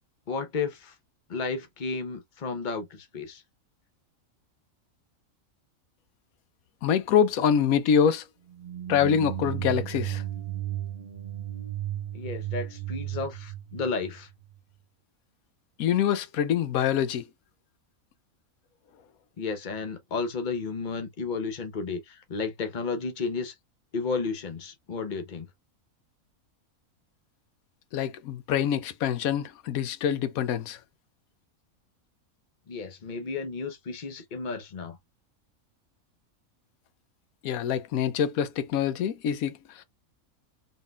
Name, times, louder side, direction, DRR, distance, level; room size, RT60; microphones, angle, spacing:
voice 1, 0.3-0.9 1.3-3.4 12.1-14.3 19.4-23.5 23.9-25.5 32.7-35.0, left 4 dB, 40° left, 1.0 m, -32 dB
voice 2, 6.8-8.2 8.9-10.2 15.8-17.2 27.9-30.8 37.4-39.8, left 8 dB, 85° left, 1.1 m, -25 dB
sound 1, 8.5-14.5, right 12 dB, 50° right, 1.1 m, -34 dB
4.0 x 3.6 x 2.3 m
omnidirectional pair, 1.5 m